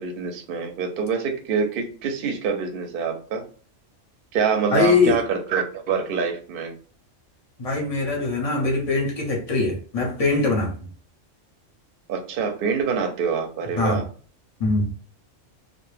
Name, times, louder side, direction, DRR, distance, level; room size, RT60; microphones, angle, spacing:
voice 1, 0.0-3.5 4.3-6.8 12.1-14.1, right 6 dB, 60° right, 0.6 m, -25 dB
voice 2, 4.7-5.2 7.6-10.9 13.8-14.0 14.6-14.9, left 3 dB, 40° left, 0.6 m, -22 dB
2.1 x 2.1 x 3.1 m
omnidirectional pair, 1.3 m